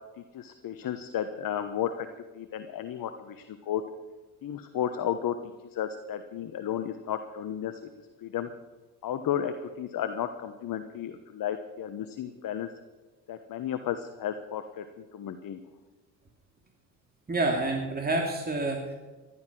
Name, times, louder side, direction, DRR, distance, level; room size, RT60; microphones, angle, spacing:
voice 1, 0.3-2.1 2.3-3.8 4.4-5.4 5.7-7.9 8.2-8.5 9.0-12.7 13.3-15.6, left 10 dB, 45° left, 9 dB, 1.2 m, -33 dB
voice 2, 17.3-19.0, right 2 dB, 20° right, 2 dB, 2.7 m, -28 dB
15.0 x 11.5 x 6.2 m, 1.2 s
hypercardioid pair, 65°, 46 cm